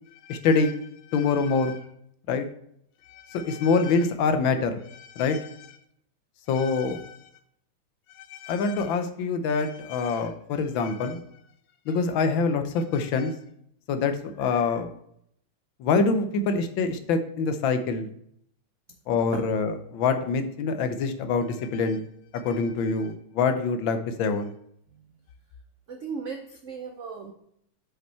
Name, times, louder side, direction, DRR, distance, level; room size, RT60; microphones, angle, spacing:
voice 1, 0.2-0.8 1.1-1.8 2.3-2.5 3.1-5.8 6.5-7.2 8.3-11.2 11.9-13.3 13.9-14.9 15.8-18.1 19.1-22.0 22.4-24.5, left 4 dB, 75° left, 8 dB, 1.5 m, -25 dB
voice 2, 25.9-27.3, right 5 dB, 75° right, 4 dB, 0.6 m, -36 dB
6.8 x 5.3 x 4.4 m, 0.70 s
omnidirectional pair, 2.2 m